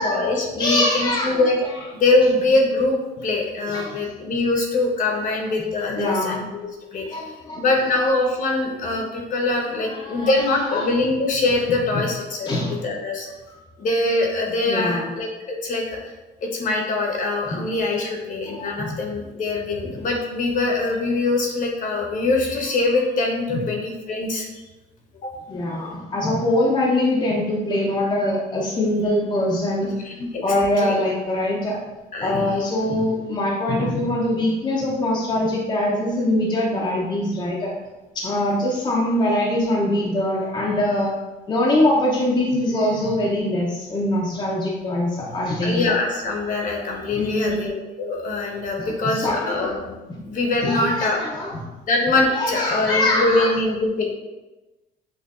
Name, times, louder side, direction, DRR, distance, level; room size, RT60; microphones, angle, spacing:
voice 1, 0.0-1.6 1.9-7.2 7.5-12.5 12.8-13.3 13.8-15.8 16.4-24.5 25.2-25.3 30.0-30.4 30.8-31.0 32.1-32.5 45.6-47.7 48.0-50.0 50.2-51.2 51.9-54.1, left 2 dB, 50° left, 1 dB, 1.0 m, -23 dB
voice 2, 0.6-1.5 3.7-4.0 5.2-5.4 5.9-6.5 7.1-7.6 7.9-8.0 9.8-10.4 10.7-10.9 11.9-12.0 12.4-12.7 13.5-13.6 14.7-15.1 18.5-19.0 23.5-23.6 25.5-29.9 30.4-31.8 32.2-37.7 38.1-41.1 41.5-45.9 47.1-47.6 48.8-49.7 50.6-51.6 52.3-53.5, left 1 dB, 25° left, -4 dB, 0.7 m, -23 dB
6.4 x 2.5 x 2.4 m, 1.1 s
cardioid pair, 110°, 17 cm